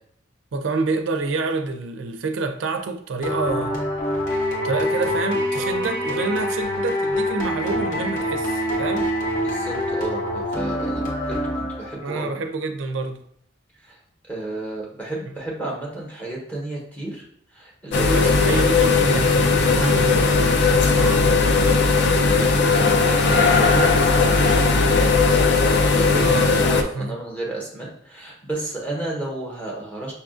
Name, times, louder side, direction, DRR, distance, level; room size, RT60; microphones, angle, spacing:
voice 1, 0.5-3.8 4.6-9.1 12.0-13.2 17.9-21.5 26.2-26.6 26.9-27.1, right 3 dB, 80° right, 0.4 m, -28 dB
sound 1, 3.2-12.1, equal, 45° left, 1.0 m, -25 dB
voice 2, 9.4-12.4 13.8-14.0 14.3-17.2 17.5-18.5 22.7-26.3 26.6-30.1, right 2 dB, 10° left, 0.9 m, -32 dB
sound 2, 17.9-26.8, left 4 dB, 60° left, 0.4 m, -17 dB
5.4 x 2.4 x 2.4 m
head